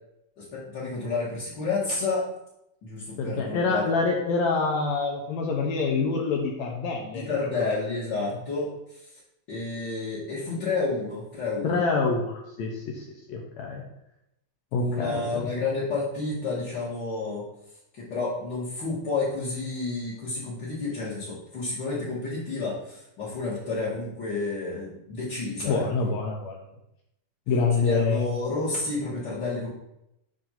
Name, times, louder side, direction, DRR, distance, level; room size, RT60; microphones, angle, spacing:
voice 1, 0.4-2.2 2.8-3.8 7.1-9.2 9.5-11.8 14.8-17.4 17.9-26.1 27.8-29.7, left 3 dB, 55° left, -9 dB, 1.3 m, -30 dB
voice 2, 3.2-7.4 7.6-7.8 11.6-13.8 14.7-15.5 25.7-26.7 27.5-28.3, left 4 dB, 85° left, 0 dB, 1.6 m, -26 dB
7.6 x 2.6 x 5.6 m, 0.84 s
omnidirectional pair, 4.0 m